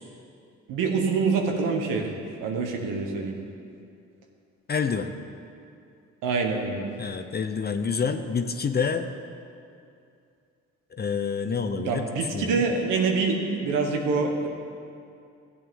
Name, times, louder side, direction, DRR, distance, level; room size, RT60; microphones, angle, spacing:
voice 1, 0.7-3.4 6.2-6.8 11.8-14.5, right 4 dB, 90° right, 2 dB, 1.2 m, -26 dB
voice 2, 4.7-5.1 7.0-9.1 10.9-12.6, left 5 dB, 30° left, 7 dB, 0.6 m, -28 dB
14.0 x 8.3 x 3.7 m, 2.5 s
supercardioid pair, 65°, 31 cm